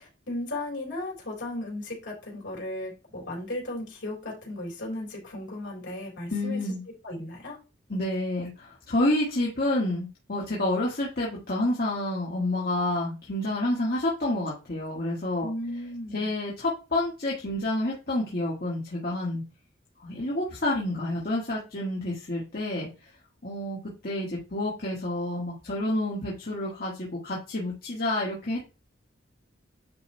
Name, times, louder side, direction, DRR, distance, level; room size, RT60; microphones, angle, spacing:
voice 1, 0.0-6.6 7.0-7.6 15.4-16.3, left 1 dB, 70° left, -2 dB, 3.8 m, -35 dB
voice 2, 6.3-6.8 7.9-15.5 16.1-19.4 20.0-23.1 23.4-23.8 24.0-28.6, left 1 dB, 50° left, -4 dB, 1.7 m, -29 dB
9.6 x 3.2 x 4.3 m, 0.30 s
head